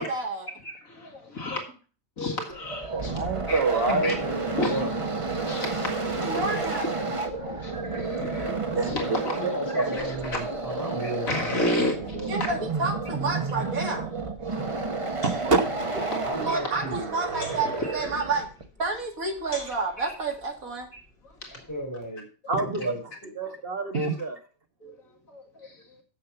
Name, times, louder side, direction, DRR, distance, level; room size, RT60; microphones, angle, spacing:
voice 1, 0.0-0.5 6.2-6.9 12.3-14.2 16.4-18.5 18.8-20.9, right 3 dB, 75° right, 2.4 m, -30 dB
voice 2, 0.6-1.6 2.2-3.2 3.5-3.6 4.0-4.1 4.6-4.8 5.5-6.5 7.2-9.4 9.7-10.4 11.0-12.5 15.1-15.2 16.1-16.8 17.3-17.9 20.0-20.1 20.9-21.7 23.9-24.1 24.8-25.0 25.3-26.0, left 1 dB, 70° left, 2.3 m, -33 dB
sound 1, 2.5-18.6, right 3 dB, 25° right, 0.9 m, -31 dB
voice 3, 2.9-4.1 7.7-8.0 8.7-8.9 9.4-9.9 14.5-14.9 15.2-16.2 22.5-22.9 23.4-24.4, right 3 dB, 45° right, 1.6 m, -27 dB
voice 4, 3.9-4.3 4.6-4.9 9.1-12.5 16.1-17.1 21.5-22.3 22.6-23.3, right 1 dB, 10° left, 3.7 m, -35 dB
sound 2, 14.3-21.9, left 2 dB, 40° left, 2.7 m, -49 dB
7.5 x 6.9 x 6.9 m
omnidirectional pair, 1.5 m